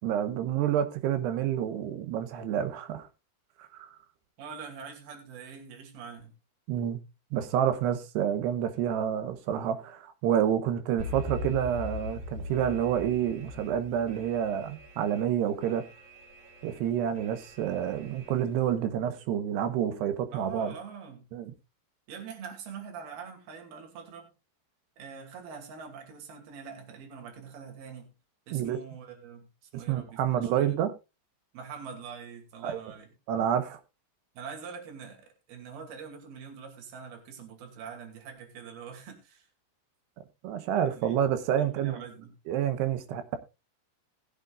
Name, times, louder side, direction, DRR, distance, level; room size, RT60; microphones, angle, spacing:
voice 1, 0.0-3.1 3.6-3.9 6.7-7.0 7.3-15.8 16.6-20.7 21.3-21.5 28.5-28.8 29.9-30.9 32.6-32.8 33.3-33.8 40.4-42.0 42.5-43.4, right 9 dB, 80° right, 3.1 m, -28 dB
voice 2, 4.4-6.3 20.3-21.2 22.1-24.3 25.0-28.1 28.5-30.8 31.5-33.1 34.3-39.5 40.8-41.2 41.6-42.4, right 6 dB, 65° right, 4.4 m, -44 dB
Alarm, 11.0-18.7, left 2 dB, 45° right, 5.4 m, -42 dB
20.0 x 8.2 x 2.4 m
omnidirectional pair, 4.8 m